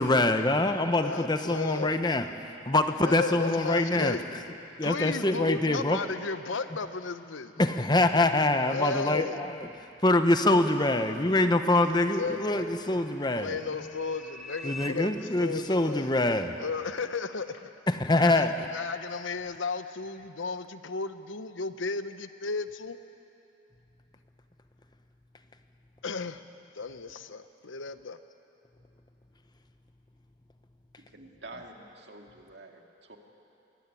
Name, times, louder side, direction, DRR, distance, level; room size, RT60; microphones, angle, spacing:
voice 1, 0.0-4.2 4.8-6.0 7.6-9.7 10.0-13.6 14.6-16.6 17.9-18.7, left 2 dB, 20° left, 0.9 m, -25 dB
voice 2, 1.0-2.0 3.0-4.2 4.8-7.5 8.7-9.4 11.8-12.6 13.3-16.1 16.6-17.6 18.2-23.0 26.0-26.4 26.7-28.2, left 4 dB, 85° left, 0.9 m, -34 dB
sound 1, 11.9-14.9, left 1 dB, ahead, 1.4 m, -47 dB
voice 3, 31.0-33.2, right 2 dB, 60° right, 2.3 m, -47 dB
23.0 x 16.0 x 9.8 m
head